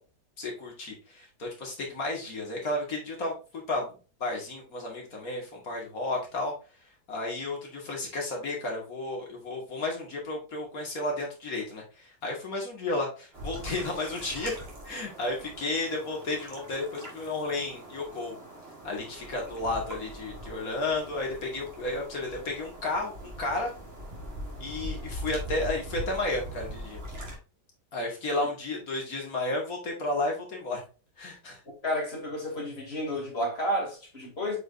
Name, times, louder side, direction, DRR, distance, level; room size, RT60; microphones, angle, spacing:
voice 1, 0.4-6.5 7.1-14.5 14.8-18.4 18.8-23.7 24.6-27.0 27.9-30.8 31.2-31.6, left 2 dB, 55° left, 2.3 m, -32 dB
sound 1, 13.3-27.4, equal, 35° right, 1.8 m, -41 dB
voice 2, 31.8-34.6, equal, 35° left, 3.0 m, -31 dB
8.0 x 4.9 x 2.6 m
omnidirectional pair, 1.8 m